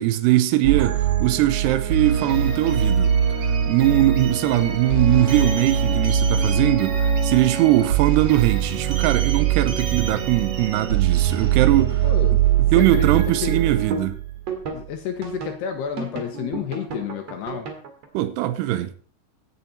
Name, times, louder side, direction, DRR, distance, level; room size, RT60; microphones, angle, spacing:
voice 1, 0.0-3.1 3.4-12.0 12.7-14.2 18.1-18.9, right 15 dB, 90° right, 2.4 m, -21 dB
sound 1, 0.6-14.8 15.2-15.6 16.0-18.1, right 8 dB, 50° right, 2.2 m, -22 dB
sound 2, 5.3-5.8 6.0-6.5 8.9-9.4 9.7-10.1, right 4 dB, 65° right, 0.5 m, -34 dB
voice 2, 12.0-13.7 14.7-17.7, left 8 dB, 75° left, 2.8 m, -31 dB
16.0 x 9.3 x 4.3 m
omnidirectional pair, 5.7 m